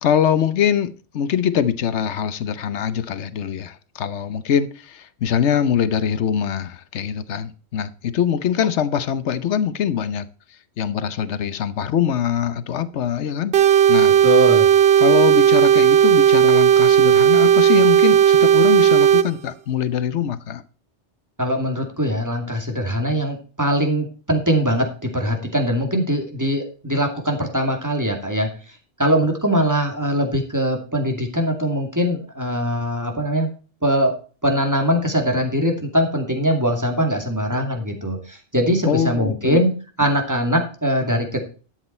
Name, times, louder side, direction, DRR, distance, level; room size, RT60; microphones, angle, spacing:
voice 1, 0.0-10.3 10.8-13.6 13.9-14.1 15.0-20.6 38.9-39.6, left 8 dB, 80° left, 1.1 m, -23 dB
sound 1, 13.5-19.3, right 9 dB, 65° right, 1.0 m, -14 dB
voice 2, 14.2-14.7 21.4-28.5 29.0-33.5 33.8-34.1 34.4-39.7 40.0-41.4, equal, 15° right, 2.4 m, -21 dB
12.0 x 8.0 x 4.4 m
omnidirectional pair, 1.2 m